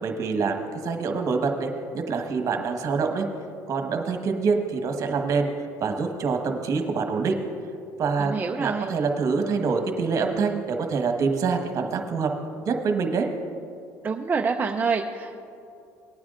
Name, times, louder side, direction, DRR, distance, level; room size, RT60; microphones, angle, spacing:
voice 1, 0.0-3.3 3.7-5.5 5.8-7.4 8.0-12.3 12.6-13.3, right 4 dB, 50° right, 4 dB, 1.3 m, -25 dB
voice 2, 8.2-8.9 14.0-15.4, right 5 dB, 25° right, 2 dB, 0.6 m, -27 dB
19.0 x 9.5 x 2.5 m, 2.6 s
supercardioid pair, 90°, 7 cm